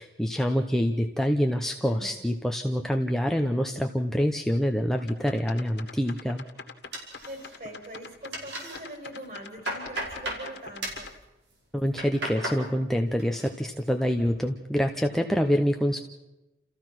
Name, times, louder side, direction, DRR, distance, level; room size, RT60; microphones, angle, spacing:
voice 1, 0.0-6.4 11.7-16.0, equal, ahead, 3 dB, 0.8 m, -26 dB
voice 2, 1.8-2.2 7.2-11.1, right 1 dB, 45° right, 2 dB, 5.2 m, -42 dB
sound 1, 5.0-11.1, left 4 dB, 70° left, 1.8 m, -44 dB
sound 2, 6.9-7.8 8.1-8.8 9.2-10.5 10.8-11.1 11.7-12.6 13.0-13.5 13.9-14.3, right 1 dB, 80° right, 5.2 m, -35 dB
29.5 x 15.0 x 6.0 m, 1.0 s
head